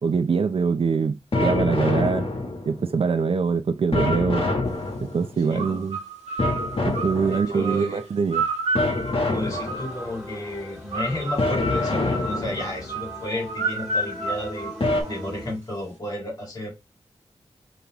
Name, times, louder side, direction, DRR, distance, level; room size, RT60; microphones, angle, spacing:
voice 1, 0.0-2.3 2.7-4.5 5.0-6.0 6.8-8.4, right 5 dB, 55° right, 0.5 m, -23 dB
sound 1, 1.3-2.9 3.9-5.4 6.4-7.7 8.7-10.1 11.4-12.9 14.8-15.0, left 2 dB, 55° left, 1.3 m, -26 dB
voice 2, 5.5-5.8 7.2-8.0 9.2-14.7 15.1-16.7, left 1 dB, 35° left, 2.3 m, -32 dB
sound 2, 5.5-10.3 10.9-15.4, right 3 dB, 90° right, 1.3 m, -31 dB
sound 3, 9.3-15.5, left 1 dB, ahead, 2.3 m, -39 dB
5.2 x 3.0 x 2.9 m
wide cardioid pair, 80°, 11 cm